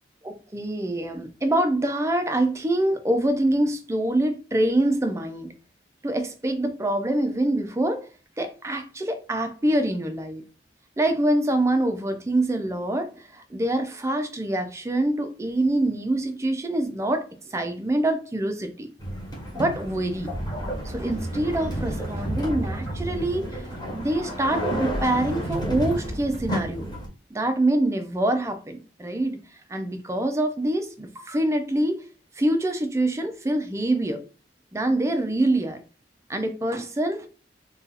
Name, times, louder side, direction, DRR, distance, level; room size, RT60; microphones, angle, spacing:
voice 1, 0.2-5.5 6.0-8.1 8.4-10.4 11.0-18.9 19.5-20.3 20.8-23.6 23.9-26.9 27.3-29.4 29.7-32.0 32.4-34.2 34.7-35.8 36.3-37.3, right 1 dB, 15° right, 0.4 m, -25 dB
sound 1, 19.0-27.1, right 1 dB, 20° left, 1.1 m, -31 dB
2.7 x 2.3 x 3.9 m
head